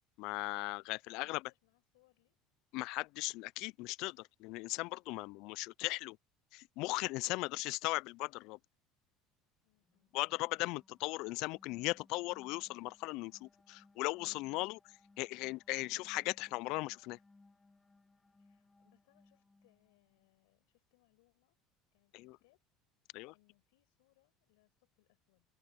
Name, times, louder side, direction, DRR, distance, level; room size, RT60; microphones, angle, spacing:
voice 1, 0.2-1.4 2.7-6.2 6.5-8.6 10.1-14.8 15.2-17.2 22.1-22.4 23.1-23.3, left 22 dB, 70° left, 0.3 m, -38 dB
voice 2, 1.0-2.4 9.6-10.1 18.4-21.6 21.9-22.6 23.3-25.5, left 22 dB, 85° left, 5.9 m, -74 dB
sound 1, 9.8-20.3, left 3 dB, 15° left, 1.5 m, -67 dB
open air
supercardioid pair, 105°, 0 cm